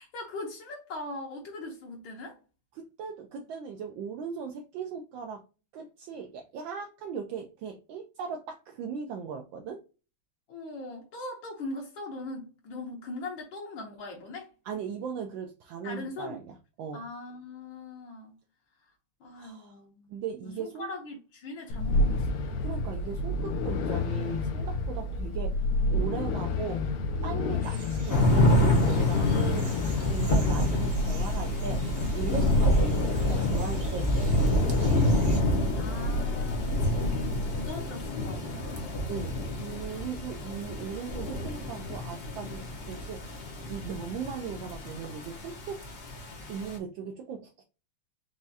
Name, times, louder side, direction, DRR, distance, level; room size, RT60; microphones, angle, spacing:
voice 1, 0.0-2.4 10.5-14.5 15.8-16.4 16.9-18.4 18.8-18.9 19.2-20.1 20.4-22.5 27.4-27.7 32.4-32.7 35.8-39.0, left 2 dB, 70° left, 1.7 m, -40 dB
voice 2, 2.8-5.4 5.7-9.8 14.7-17.0 19.4-19.7 20.1-20.9 22.6-25.5 25.9-26.8 27.2-34.1 34.4-35.0 39.1-45.8 46.5-47.6, right 6 dB, 75° right, 1.2 m, -38 dB
sound 1, 21.7-37.7, left 2 dB, 90° left, 1.6 m, -30 dB
sound 2, 27.6-35.4, right 1 dB, 45° right, 1.2 m, -46 dB
sound 3, 28.1-46.8, left 1 dB, 50° left, 0.7 m, -28 dB
4.7 x 3.0 x 2.7 m
omnidirectional pair, 2.3 m